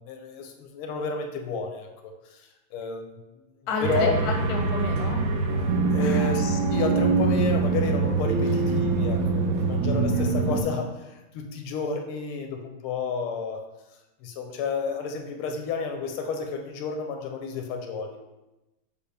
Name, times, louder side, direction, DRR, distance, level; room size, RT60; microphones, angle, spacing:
voice 1, 0.0-3.2 3.8-4.3 5.9-13.6 14.2-18.2, left 4 dB, 90° left, 4 dB, 1.5 m, -31 dB
voice 2, 3.7-5.2 6.0-6.3, left 2 dB, 65° left, 2 dB, 1.0 m, -30 dB
sound 1, 3.8-10.6, right 3 dB, 80° right, 1.0 m, -24 dB
6.7 x 2.2 x 3.2 m, 1.0 s
omnidirectional pair, 2.3 m